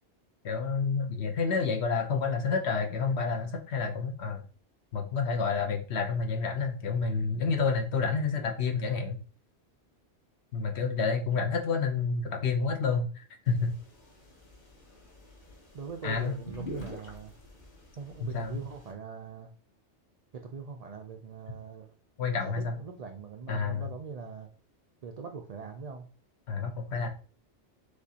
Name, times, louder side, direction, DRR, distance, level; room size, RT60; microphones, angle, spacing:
voice 1, 0.4-4.4 4.9-9.2 10.5-13.7 16.0-16.3 18.2-18.6 22.2-22.8 23.5-23.9 26.5-27.1, left 5 dB, 70° left, 3 dB, 1.1 m, -29 dB
voice 2, 10.8-11.2 15.7-17.3 18.0-19.5 20.3-21.9 22.5-24.5 25.0-26.1, right 5 dB, 65° right, 4 dB, 0.4 m, -42 dB
sound 1, 13.5-18.9, equal, 40° left, 1.1 m, -47 dB
6.3 x 2.5 x 2.8 m, 0.39 s
omnidirectional pair, 1.2 m